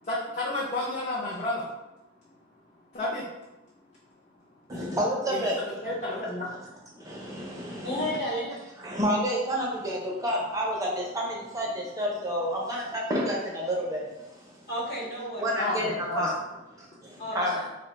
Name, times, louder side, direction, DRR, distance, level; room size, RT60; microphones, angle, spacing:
voice 1, 0.0-1.7 2.9-3.3 5.3-5.5 5.8-6.5 15.6-16.3, left 2 dB, 35° left, -6 dB, 0.5 m, -31 dB
voice 2, 4.7-5.6 6.5-6.6 6.9-8.1 8.8-14.6 15.4-16.3 16.8-17.6, equal, 15° right, -3 dB, 0.5 m, -30 dB
voice 3, 7.8-8.6 9.5-9.6 14.7-15.4 15.9-16.0 17.2-17.7, equal, 55° left, -5 dB, 1.1 m, -32 dB
2.3 x 2.2 x 3.9 m, 0.96 s
head